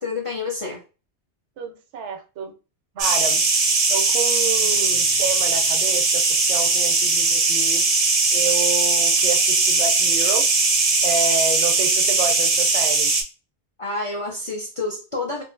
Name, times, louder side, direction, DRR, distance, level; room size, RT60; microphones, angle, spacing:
voice 1, 0.0-0.8 13.8-15.4, left 3 dB, 50° left, -2 dB, 0.4 m, -28 dB
voice 2, 1.6-2.5 2.9-3.4 3.9-6.2 6.5-7.8 8.3-10.4 11.0-13.1, right 5 dB, 85° right, 5 dB, 0.9 m, -29 dB
sound 1, 3.0-13.2, right 3 dB, 50° right, 0.4 m, -19 dB
2.6 x 2.4 x 2.5 m, 0.33 s
omnidirectional pair, 1.2 m